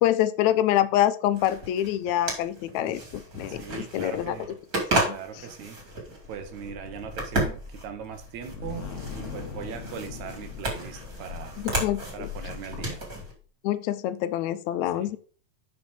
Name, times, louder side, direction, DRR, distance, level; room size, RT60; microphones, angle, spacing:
voice 1, 0.0-4.4 5.0-5.2 11.6-12.3 13.6-15.2, left 12 dB, 80° left, 1.8 m, -26 dB
sound 1, 1.3-13.3, right 1 dB, 30° right, 2.9 m, -33 dB
voice 2, 3.5-4.5 5.0-11.6 12.1-13.0 14.9-15.1, right 8 dB, 75° right, 2.4 m, -40 dB
sound 2, 5.2-13.3, left 7 dB, 60° left, 0.7 m, -41 dB
6.1 x 6.0 x 5.2 m
omnidirectional pair, 3.4 m